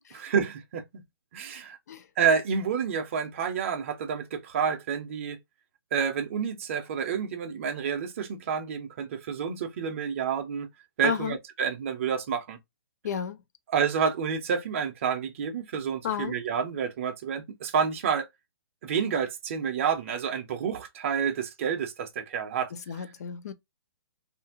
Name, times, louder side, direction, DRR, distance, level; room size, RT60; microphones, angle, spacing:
voice 1, 0.1-1.0 1.3-1.8 2.2-5.4 5.9-10.7 11.0-12.6 13.7-18.3 18.8-22.7 23.0-23.1, right 7 dB, 35° right, 0.6 m, -29 dB
voice 2, 11.0-11.4 13.0-13.4 16.0-16.3 22.7-23.5, left 8 dB, 45° left, 0.5 m, -32 dB
2.8 x 2.5 x 2.6 m
hypercardioid pair, 170°, 12 cm